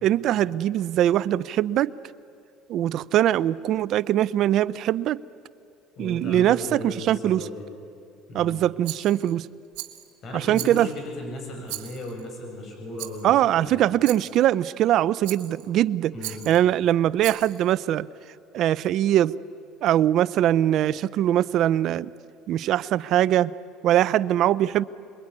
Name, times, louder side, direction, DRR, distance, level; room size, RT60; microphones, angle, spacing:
voice 1, 0.0-1.9 2.7-5.2 6.0-7.5 8.3-9.5 10.3-10.9 13.2-16.1 16.5-18.1 18.5-19.3 19.8-22.1 22.5-23.5 23.8-24.8, right 12 dB, 55° right, 18 dB, 0.6 m, -22 dB
voice 2, 6.0-7.6 8.3-8.5 10.2-13.8 16.1-16.4, left 1 dB, 45° left, 2 dB, 8.0 m, -36 dB
Rattle, 8.8-9.3 9.7-10.1 10.5-11.1 11.7-12.2 13.0-13.3 14.0-14.4 15.2-15.7 16.2-16.6 17.2-17.7, right 17 dB, 80° right, 1.6 m, -38 dB
26.5 x 22.5 x 9.8 m, 2.4 s
supercardioid pair, 110°, 0 cm